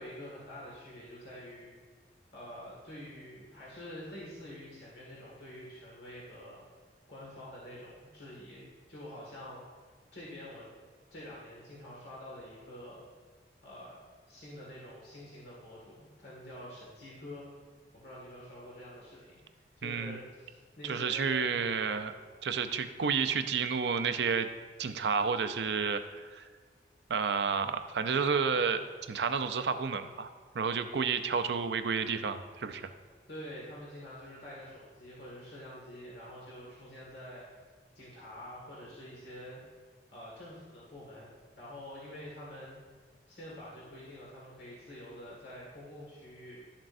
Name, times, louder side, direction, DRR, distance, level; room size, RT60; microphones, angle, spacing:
voice 1, 0.0-1.7 2.3-6.6 7.1-9.6 10.1-10.7 11.1-13.0 13.6-14.0 14.3-17.5 17.9-21.5 33.3-37.4 38.0-39.6 40.1-42.8 43.3-46.6, left 1 dB, 75° left, -6 dB, 1.9 m, -47 dB
voice 2, 19.8-20.2 20.8-22.1 22.4-24.5 24.8-26.4 27.1-28.8 29.1-30.3 30.5-32.9, right 5 dB, 75° right, 9 dB, 0.5 m, -30 dB
11.5 x 7.4 x 2.6 m, 1.5 s
head